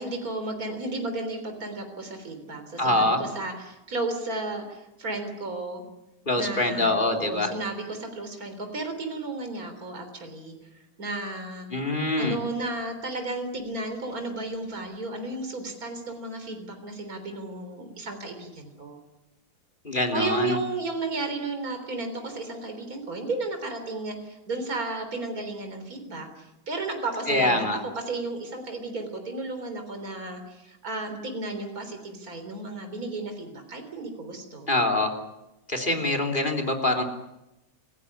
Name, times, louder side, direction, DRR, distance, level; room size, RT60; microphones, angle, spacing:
voice 1, 0.0-5.8 6.4-11.7 12.2-19.0 20.1-27.8 28.1-34.7, right 2 dB, 60° right, 6 dB, 4.2 m, -33 dB
voice 2, 2.8-3.2 6.3-7.5 11.7-12.4 19.8-20.6 27.3-27.8 34.7-35.2 35.7-37.0, left 2 dB, 30° left, 3 dB, 3.4 m, -24 dB
28.5 x 16.0 x 9.8 m, 0.94 s
omnidirectional pair, 1.8 m